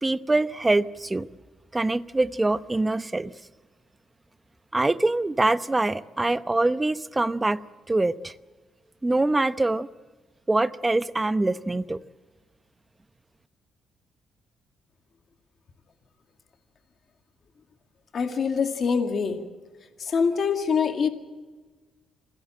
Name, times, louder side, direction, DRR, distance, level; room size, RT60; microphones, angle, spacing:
voice 1, 0.0-1.3 1.7-3.3 4.7-7.6 7.9-8.3 9.0-9.9 10.5-12.0, right 2 dB, 15° right, 14 dB, 0.8 m, -24 dB
voice 2, 18.1-19.4 20.0-21.1, left 6 dB, 50° left, 6 dB, 2.1 m, -24 dB
27.0 x 16.5 x 7.8 m, 1.3 s
cardioid pair, 90°, 0 cm